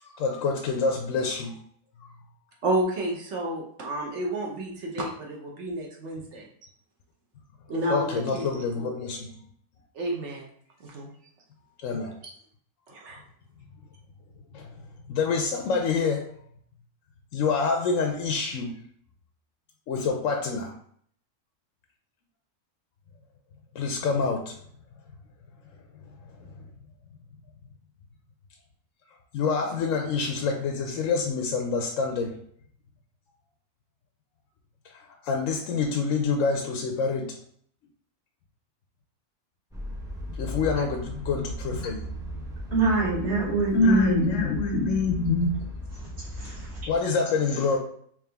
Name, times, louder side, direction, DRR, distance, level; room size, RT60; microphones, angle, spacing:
voice 1, 0.0-1.6 7.9-9.3 11.8-12.1 14.5-14.7 15.1-16.2 17.3-18.7 19.9-20.7 23.7-24.5 26.4-26.5 29.3-32.3 34.8-37.4 40.4-42.1 43.7-45.6 46.9-47.8, left 4 dB, 70° left, 2 dB, 0.8 m, -26 dB
voice 2, 2.6-6.5 7.7-8.9 9.9-10.5 10.8-11.1 12.9-13.2, right 1 dB, 55° right, -1 dB, 0.9 m, -31 dB
sound 1, 39.7-47.0, equal, 5° right, 0.3 m, -37 dB
voice 3, 42.7-44.4 46.2-46.8, right 2 dB, 40° right, -9 dB, 1.4 m, -25 dB
3.6 x 3.0 x 3.3 m, 0.62 s
omnidirectional pair, 1.6 m